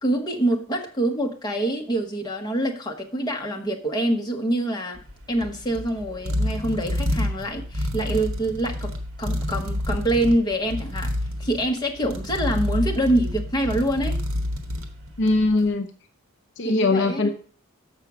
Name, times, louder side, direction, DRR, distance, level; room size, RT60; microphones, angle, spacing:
voice 1, 0.0-5.0 5.3-8.9 9.2-11.1 11.4-14.2 16.6-17.3, right 1 dB, 20° left, 2 dB, 1.1 m, -25 dB
sound 1, 5.0-15.5, left 1 dB, 70° right, 1.4 m, -29 dB
voice 2, 15.2-15.9 16.6-17.3, left 2 dB, 55° left, 8 dB, 0.6 m, -21 dB
6.8 x 5.9 x 6.1 m, 0.42 s
head